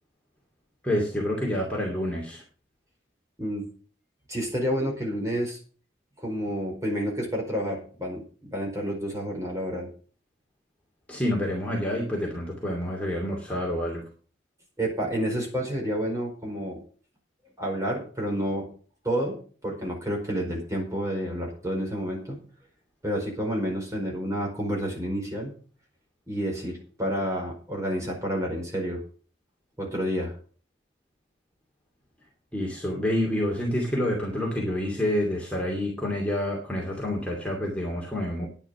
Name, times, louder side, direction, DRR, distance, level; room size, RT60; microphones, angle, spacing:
voice 1, 0.8-2.4 11.1-14.0 32.5-38.5, left 1 dB, 5° left, -3 dB, 2.4 m, -28 dB
voice 2, 4.3-5.6 6.2-9.9 14.8-16.8 17.6-18.7 19.0-22.4 23.0-25.6 26.3-29.0 29.8-30.3, equal, 15° right, -1 dB, 4.8 m, -29 dB
10.5 x 9.9 x 5.9 m, 0.42 s
head